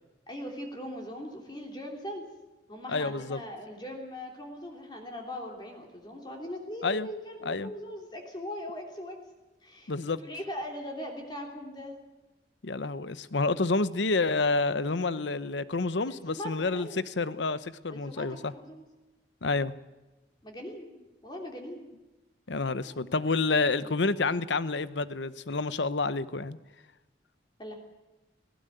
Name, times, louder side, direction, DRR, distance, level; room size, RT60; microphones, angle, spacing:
voice 1, 0.3-2.3 2.7-9.2 9.6-12.0 16.0-17.0 17.9-18.8 20.4-21.9 22.9-23.0 27.6-27.8, left 1 dB, 25° left, 1 dB, 3.2 m, -40 dB
voice 2, 2.9-3.4 6.8-7.1 7.5-7.7 9.9-10.2 12.6-18.5 19.4-19.7 22.5-26.6, left 3 dB, 75° left, 15 dB, 0.9 m, -29 dB
19.0 x 17.0 x 9.1 m, 1.1 s
head